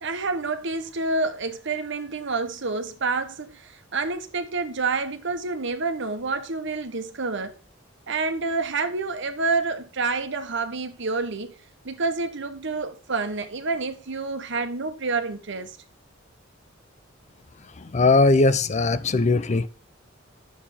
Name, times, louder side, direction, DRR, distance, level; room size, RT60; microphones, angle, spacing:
voice 1, 0.0-7.6 8.1-11.5 11.8-15.8, right 3 dB, 65° right, 1.2 m, -28 dB
voice 2, 17.8-19.7, left 3 dB, 35° left, 0.5 m, -19 dB
9.4 x 6.9 x 4.3 m
head